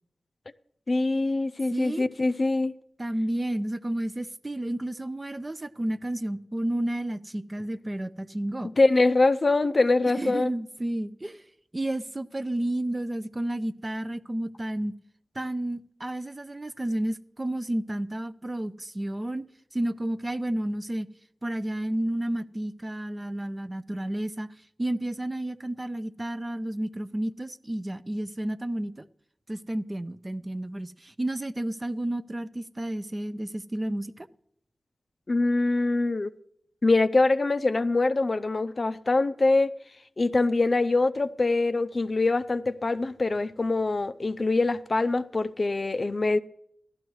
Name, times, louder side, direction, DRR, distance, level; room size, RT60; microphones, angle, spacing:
voice 1, 0.9-2.7 8.8-10.5 35.3-36.3 36.8-39.7 40.2-46.4, left 2 dB, 40° left, 0.4 m, -24 dB
voice 2, 1.7-2.1 3.0-8.7 10.0-11.4 11.7-14.9 15.4-19.5 19.7-21.1 21.4-24.5 24.8-29.1 29.5-34.3, right 1 dB, 25° right, 0.4 m, -31 dB
17.0 x 12.5 x 3.1 m
wide cardioid pair, 95°, 0 cm